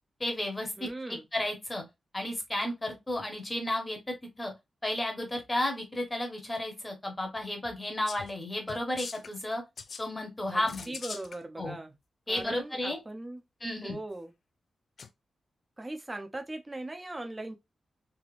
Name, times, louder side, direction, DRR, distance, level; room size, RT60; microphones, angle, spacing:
voice 1, 0.2-0.9 1.3-1.8 2.1-4.5 4.8-9.6 10.0-11.0 11.6-11.8 12.3-13.0 13.6-14.0, left 1 dB, 15° left, 0.9 m, -33 dB
voice 2, 0.8-1.3 10.5-12.0 12.3-13.4 13.8-14.3 15.8-17.6, right 2 dB, 15° right, 0.6 m, -39 dB
sound 1, 8.1-8.4 8.7-9.4 9.8-10.0 10.7-11.4 12.4-12.5 15.0-15.1, left 5 dB, 55° left, 0.3 m, -42 dB
3.3 x 2.8 x 2.4 m
wide cardioid pair, 160°, 0 cm